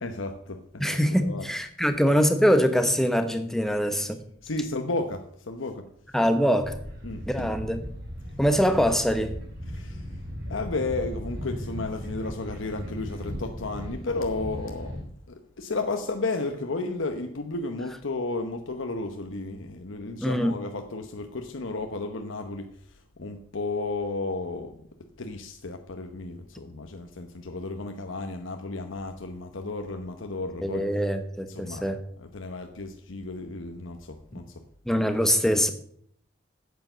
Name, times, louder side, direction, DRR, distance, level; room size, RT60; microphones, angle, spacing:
voice 1, 0.0-1.5 4.4-5.9 7.0-7.5 9.7-10.1 10.5-15.0 15.3-24.7 25.2-30.8 31.5-31.9 32.2-34.6, left 3 dB, 85° left, 5 dB, 0.9 m, -33 dB
voice 2, 0.8-4.2 6.1-6.7 7.3-7.8 8.4-9.3 20.2-20.6 30.6-32.0 34.9-35.7, equal, ahead, 8 dB, 1.0 m, -23 dB
sound 1, 6.6-15.0, equal, 55° right, 3.8 m, -37 dB
9.0 x 8.4 x 6.7 m, 0.65 s
head